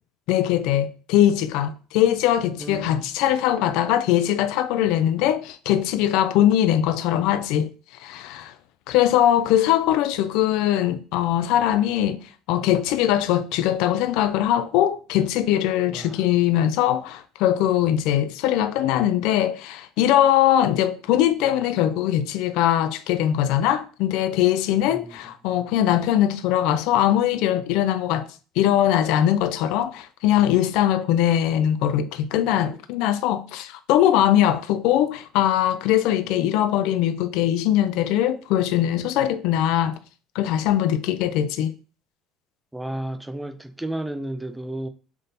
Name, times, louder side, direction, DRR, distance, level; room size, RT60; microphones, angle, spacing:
voice 1, 0.3-7.7 8.0-8.5 8.9-12.2 12.5-28.3 28.6-40.0 40.3-41.7, left 11 dB, 70° left, 0.3 m, -21 dB
voice 2, 2.6-3.1 15.9-16.3 24.9-25.2 42.7-44.9, right 1 dB, 5° right, 0.4 m, -32 dB
3.5 x 2.6 x 4.0 m
cardioid pair, 135°, 0 cm